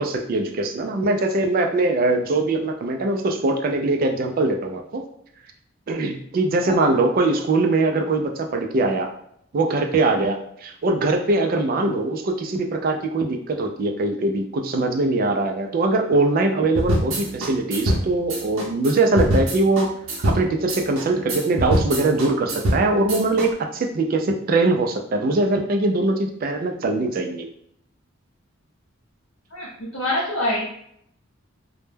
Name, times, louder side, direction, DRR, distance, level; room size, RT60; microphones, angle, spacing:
voice 1, 0.0-5.0 5.9-9.1 9.5-19.9 20.2-27.5, right 2 dB, 45° right, 4 dB, 0.3 m, -22 dB
sound 1, 16.8-23.5, equal, 80° right, 0.6 m, -24 dB
voice 2, 29.5-30.6, left 1 dB, 65° left, -5 dB, 0.6 m, -25 dB
2.1 x 2.1 x 3.2 m, 0.71 s
head